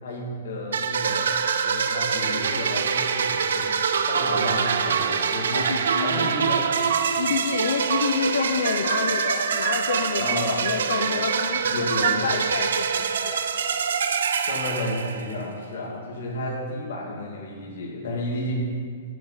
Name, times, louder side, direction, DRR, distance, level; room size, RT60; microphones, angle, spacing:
voice 1, 0.0-3.7 4.1-6.7 10.2-10.5 11.7-12.3 14.4-18.5, left 1 dB, 60° left, -1 dB, 2.4 m, -32 dB
sound 1, 0.7-15.5, right 6 dB, 90° right, 0.7 m, -25 dB
sound 2, 4.4-5.4 5.7-6.4 6.6-8.1 8.4-9.4 9.7-10.4 10.7-12.2, right 10 dB, 45° right, 0.5 m, -30 dB
voice 2, 5.5-6.4 7.2-13.5, left 6 dB, 80° left, 5 dB, 0.7 m, -28 dB
11.5 x 6.1 x 5.7 m, 2.1 s
hypercardioid pair, 180°, 0 cm